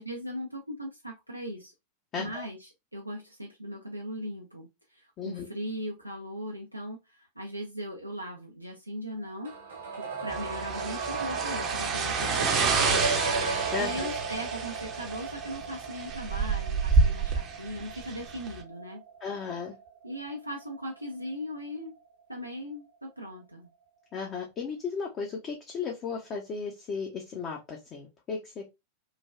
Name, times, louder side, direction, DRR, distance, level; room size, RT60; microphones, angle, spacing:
voice 1, 0.0-1.7 2.2-9.5 10.0-19.0 20.0-22.0 22.3-23.7, equal, 90° right, 0 dB, 0.4 m, -39 dB
voice 2, 2.1-2.5 5.2-5.5 13.7-14.1 19.2-19.7 24.1-28.7, left 5 dB, 30° left, 0 dB, 0.6 m, -35 dB
sound 1, 9.4-21.3 21.6-21.7, right 4 dB, 70° right, 1.0 m, -35 dB
sound 2, 10.3-18.6, right 4 dB, 30° right, 0.6 m, -29 dB
3.1 x 2.2 x 2.3 m, 0.23 s
figure-of-eight pair, 90°, 0 cm